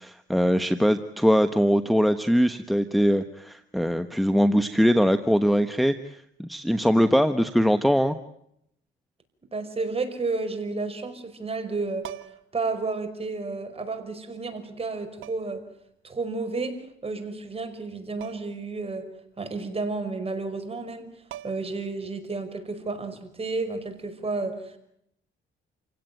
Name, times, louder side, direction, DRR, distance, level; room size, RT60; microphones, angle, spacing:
voice 1, 0.0-8.2, equal, ahead, 10 dB, 1.1 m, -22 dB
voice 2, 9.5-12.1 12.5-15.6 16.0-19.1 19.4-21.1 21.4-24.8, right 3 dB, 30° right, 7 dB, 5.5 m, -31 dB
sound 1, 12.0-12.6 13.9-14.0 15.2-15.7 18.2-18.6 19.0-19.1 20.9-21.0 21.3-21.9 23.9-24.1, right 13 dB, 85° right, 1.2 m, -43 dB
28.5 x 17.0 x 9.3 m, 0.75 s
cardioid pair, 90°, 20 cm